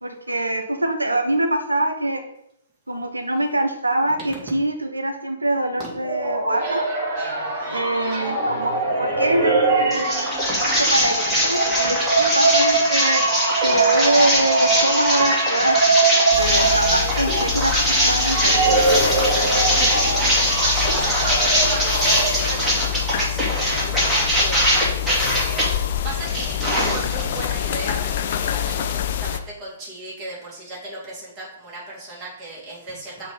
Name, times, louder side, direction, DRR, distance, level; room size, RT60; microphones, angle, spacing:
voice 1, 0.0-2.2 2.9-6.9 7.2-7.3 7.7-8.7 9.0-13.2 13.6-15.8 16.4-18.8, right 1 dB, 85° right, 5 dB, 0.9 m, -24 dB
sound 1, 5.8-22.8, right 3 dB, 40° right, 2.2 m, -23 dB
sound 2, 9.9-25.7 26.1-27.4, equal, 5° right, 2.0 m, -22 dB
sound 3, 16.3-29.4, left 9 dB, 45° left, 0.5 m, -27 dB
voice 2, 19.2-33.3, right 2 dB, 25° right, -5 dB, 2.4 m, -36 dB
6.7 x 3.1 x 5.2 m, 0.74 s
figure-of-eight pair, 120°, 0 cm